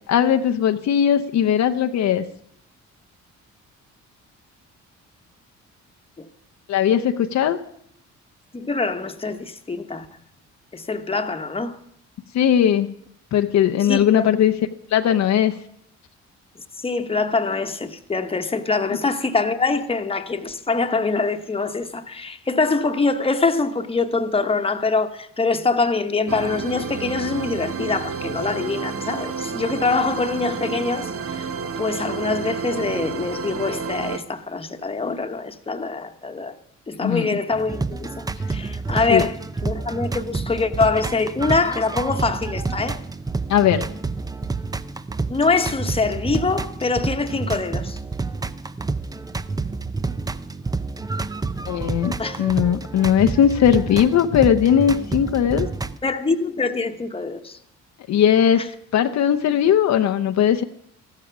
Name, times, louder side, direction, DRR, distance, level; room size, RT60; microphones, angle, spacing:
voice 1, 0.1-2.2 6.7-7.6 12.3-12.9 13.3-14.5 14.9-15.5 37.0-37.4 39.1-39.2 43.5-43.8 51.7-55.7 58.1-58.7 58.9-60.6, left 9 dB, 65° left, 0.7 m, -18 dB
voice 2, 8.5-10.1 10.7-11.8 13.9-14.4 16.8-31.5 31.8-36.5 36.9-39.4 39.6-43.0 45.3-48.0 52.2-52.4 56.0-57.6 58.6-58.7, left 3 dB, 20° left, 1.2 m, -24 dB
sound 1, 26.3-34.2, right 5 dB, 50° right, 1.1 m, -30 dB
sound 2, 37.5-56.0, right 3 dB, 15° right, 0.5 m, -29 dB
14.0 x 12.0 x 6.0 m
cardioid pair, 90°, 30 cm